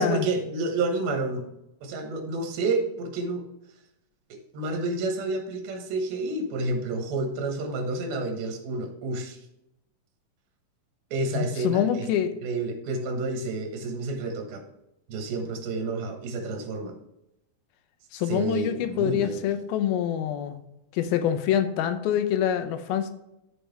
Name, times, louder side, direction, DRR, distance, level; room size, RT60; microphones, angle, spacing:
voice 1, 0.0-1.4 1.8-3.4 4.5-9.4 11.1-12.1 12.4-14.6 15.1-17.0 18.3-19.4, right 3 dB, 85° right, 4 dB, 3.2 m, -29 dB
voice 2, 11.3-12.4 18.1-20.6 20.9-23.1, left 9 dB, 90° left, 9 dB, 2.6 m, -25 dB
12.5 x 4.8 x 3.3 m, 0.87 s
omnidirectional pair, 4.3 m